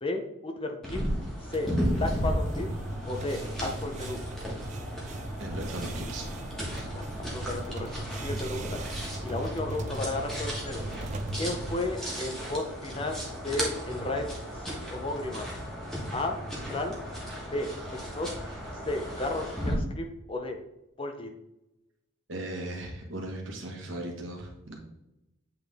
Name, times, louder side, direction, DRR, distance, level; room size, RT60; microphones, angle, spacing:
voice 1, 0.0-1.0 1.5-1.7 1.9-2.7 3.1-4.2 6.9-7.0 7.3-7.9 8.2-8.8 9.2-10.8 11.4-14.3 14.5-15.4 16.1-16.4 16.7-17.0 17.5-18.3 18.9-20.6 21.0-21.3, left 2 dB, 25° left, 4 dB, 0.6 m, -33 dB
sound 1, 0.8-19.7, equal, ahead, 1.3 m, -35 dB
sound 2, 1.5-11.9, right 2 dB, 35° right, 0.4 m, -38 dB
voice 2, 5.4-6.3 22.3-24.8, right 1 dB, 65° right, 0 dB, 1.4 m, -37 dB
8.0 x 3.5 x 3.5 m, 0.89 s
head